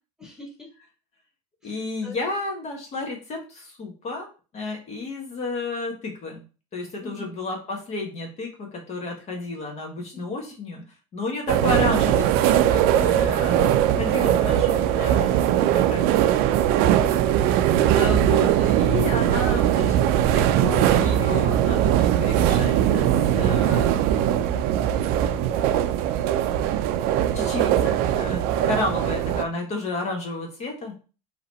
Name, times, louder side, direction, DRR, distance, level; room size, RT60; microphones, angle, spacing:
voice 1, 0.2-0.7 1.6-2.2 7.0-7.3 12.9-13.3 16.9-17.3 28.5-28.7, left 2 dB, 5° right, -1 dB, 1.5 m, -41 dB
voice 2, 1.6-4.3 4.5-6.4 6.7-10.8 11.1-16.2 17.9-23.1 23.3-24.5 25.1-25.7 27.3-31.0, left 3 dB, 40° left, 2 dB, 1.3 m, -32 dB
sound 1, 11.5-29.4, right 11 dB, 60° right, 0.5 m, -20 dB
4.0 x 3.0 x 4.1 m, 0.34 s
supercardioid pair, 120°, 18 cm